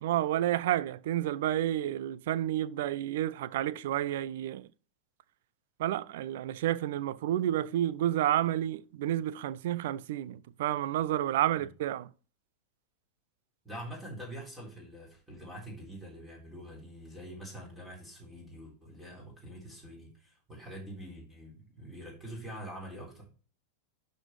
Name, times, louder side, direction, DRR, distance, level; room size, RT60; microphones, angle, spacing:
voice 1, 0.0-4.7 5.8-12.1, right 12 dB, 55° right, 0.4 m, -30 dB
voice 2, 13.6-23.3, equal, 10° right, 3.6 m, -45 dB
12.0 x 4.2 x 3.3 m
figure-of-eight pair, 90°, 0 cm